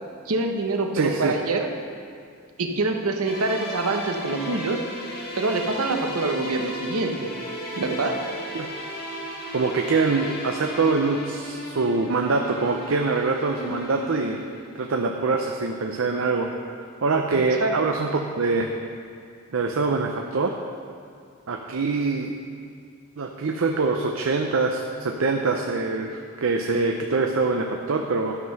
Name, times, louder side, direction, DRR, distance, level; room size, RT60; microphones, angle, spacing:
voice 1, 0.3-1.7 2.6-4.8 5.4-7.3 7.8-8.2 17.3-17.7, right 3 dB, 85° right, 4 dB, 0.9 m, -25 dB
voice 2, 0.9-1.4 8.5-8.7 9.5-14.4 14.8-16.5 17.0-18.7 19.5-20.5 21.5-22.3 23.2-28.4, right 3 dB, 65° right, 3 dB, 0.6 m, -24 dB
sound 1, 3.2-15.1, left 1 dB, 45° left, 1.4 m, -35 dB
12.0 x 5.7 x 5.5 m, 2.2 s
head